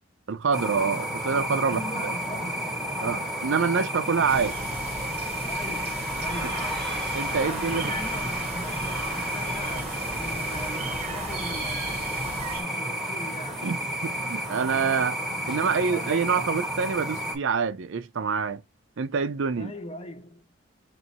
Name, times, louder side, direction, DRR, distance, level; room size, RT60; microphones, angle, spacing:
voice 1, 0.3-2.1 3.0-4.6 7.1-7.9 13.6-15.2 15.5-18.6 19.0-19.7, right 5 dB, 60° right, 0.5 m, -26 dB
sound 1, 0.5-17.4, equal, ahead, 1.0 m, -31 dB
voice 2, 1.6-3.4 5.5-13.7 15.5-16.2 19.6-20.5, left 1 dB, 25° left, 0.6 m, -41 dB
sound 2, 4.3-12.6, right 3 dB, 30° right, 0.9 m, -37 dB
3.1 x 2.8 x 4.2 m
head